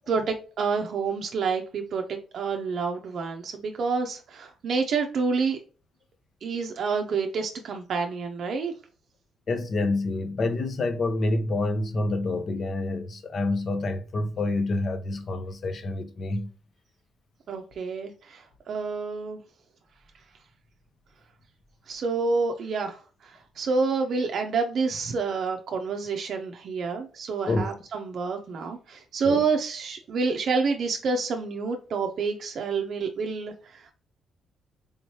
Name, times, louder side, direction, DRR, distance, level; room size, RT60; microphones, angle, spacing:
voice 1, 0.1-5.6 6.4-8.7 17.5-19.4 21.9-33.9, right 4 dB, 60° right, 0.5 m, -28 dB
voice 2, 9.5-16.5 27.5-27.6 29.3-29.4, left 2 dB, 50° left, 0.6 m, -27 dB
3.4 x 3.1 x 2.8 m
cardioid pair, 90°, 0 cm